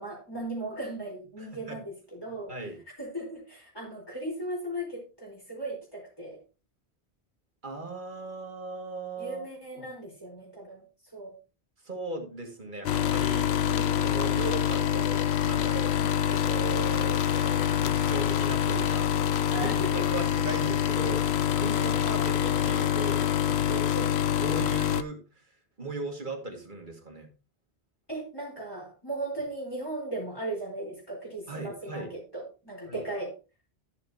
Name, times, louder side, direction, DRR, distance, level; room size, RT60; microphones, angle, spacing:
voice 1, 0.0-2.5 3.0-6.4 9.2-10.8 11.1-11.4 15.9-16.1 19.5-20.1 21.7-22.4 23.9-24.1 28.1-33.3, right 1 dB, 20° left, -4 dB, 4.7 m, -37 dB
voice 2, 1.4-1.8 2.5-2.8 7.6-9.5 9.8-9.9 11.8-15.9 16.3-19.1 19.5-23.9 24.4-25.4 25.8-27.3 31.5-32.1 32.9-33.0, right 2 dB, 50° right, 2 dB, 2.4 m, -37 dB
sound 1, 12.8-25.0, left 9 dB, 85° left, 1.0 m, -26 dB
14.5 x 7.1 x 2.9 m, 0.31 s
omnidirectional pair, 1.1 m